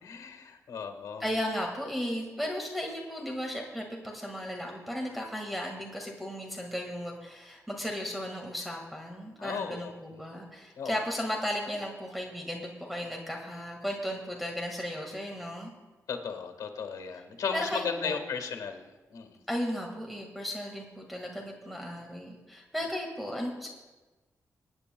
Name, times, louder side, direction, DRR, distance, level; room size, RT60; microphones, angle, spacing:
voice 1, 0.0-1.2 9.4-9.9 10.8-11.0 16.1-19.4, left 6 dB, 90° left, 5 dB, 1.5 m, -36 dB
voice 2, 1.2-15.7 17.5-18.2 19.5-23.7, equal, ahead, 0 dB, 1.7 m, -35 dB
25.0 x 9.9 x 2.2 m, 1.2 s
cardioid pair, 90°, 6 cm